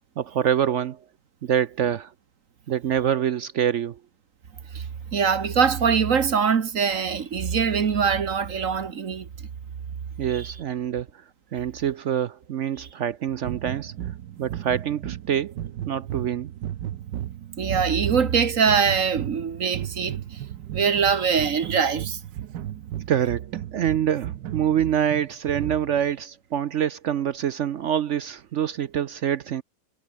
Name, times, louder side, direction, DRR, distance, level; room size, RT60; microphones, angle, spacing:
voice 1, 0.2-1.0 1.4-2.1 2.7-4.0 10.2-11.2 11.5-13.9 14.4-15.5 15.8-16.5 23.1-29.6, right 9 dB, 65° right, 0.7 m, -25 dB
voice 2, 4.7-9.3 10.3-10.5 12.8-12.9 17.6-20.4 20.7-22.2, right 6 dB, 50° right, 1.6 m, -23 dB
sound 1, 13.4-26.1, right 11 dB, 80° right, 1.6 m, -35 dB
omnidirectional pair, 1.9 m